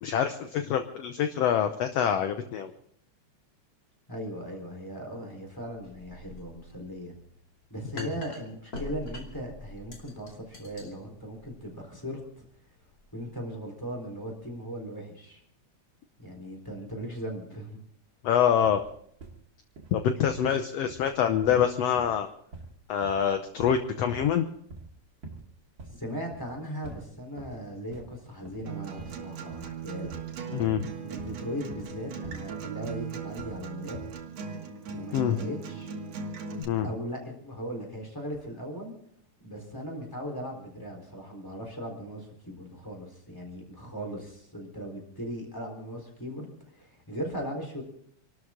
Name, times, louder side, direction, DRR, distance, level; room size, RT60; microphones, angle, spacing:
voice 1, 0.0-2.7 8.0-8.1 18.2-18.8 19.9-22.3 22.9-24.5 30.5-30.9 35.1-35.4 36.6-36.9, left 9 dB, 70° left, 8 dB, 1.8 m, -26 dB
voice 2, 4.1-7.1 7.7-12.5 13.1-15.4 16.2-17.8 20.4-20.5 25.9-30.1 31.0-34.0 34.9-35.9 36.8-38.9 39.4-47.8, equal, 5° left, 1 dB, 3.7 m, -38 dB
sound 1, 5.5-13.2, left 1 dB, 30° left, 2.9 m, -46 dB
sound 2, 18.6-19.4 19.7-20.0 20.3-20.6 20.9-21.1 21.4-23.3 23.6-23.8 24.1-24.4 24.7-24.9 25.2-25.5 25.8-26.0 26.3-26.6 26.8-27.6 27.9-28.2 28.4-28.7 29.0-29.2 29.5-32.5 32.8-33.6 33.9-34.2, right 3 dB, 40° right, 2.8 m, -46 dB
Acoustic guitar, 28.7-36.6, right 5 dB, 65° right, 2.7 m, -38 dB
27.5 x 13.0 x 3.7 m, 0.64 s
omnidirectional pair, 3.3 m